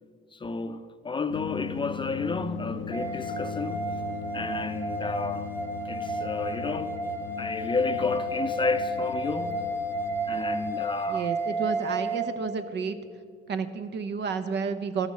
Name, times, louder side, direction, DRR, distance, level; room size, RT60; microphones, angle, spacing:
voice 1, 0.3-3.8 4.3-5.5 5.9-6.9 7.4-9.6 10.3-11.3, left 4 dB, 25° left, 0.5 m, -31 dB
sound 1, 1.3-10.7, left 6 dB, 90° left, 0.5 m, -38 dB
sound 2, 2.9-12.2, right 2 dB, 10° right, 1.5 m, -32 dB
voice 2, 11.1-13.0 13.5-15.1, right 5 dB, 60° right, 0.8 m, -31 dB
13.0 x 5.9 x 6.9 m
cardioid pair, 90°, 20 cm